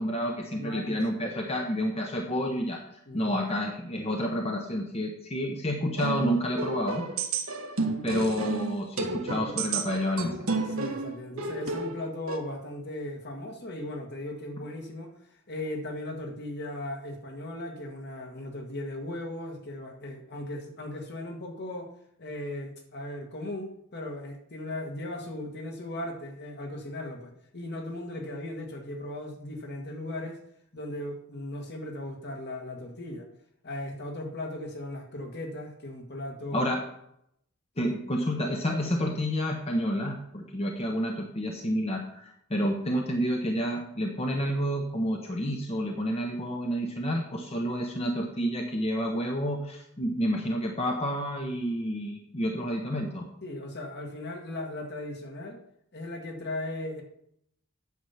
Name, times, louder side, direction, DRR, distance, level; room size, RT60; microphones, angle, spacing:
voice 1, 0.0-2.8 3.1-7.0 8.0-10.5 36.5-36.8 37.8-53.3, equal, 30° left, 2 dB, 0.9 m, -29 dB
voice 2, 0.5-1.0 3.1-3.4 10.6-21.9 22.2-30.4 30.7-33.3 33.6-36.7 37.8-37.9 53.4-55.6 55.9-57.0, left 1 dB, 55° left, 2 dB, 1.7 m, -37 dB
sound 1, 6.0-12.4, right 3 dB, 80° right, 1.4 m, -32 dB
9.5 x 7.1 x 5.7 m, 0.75 s
head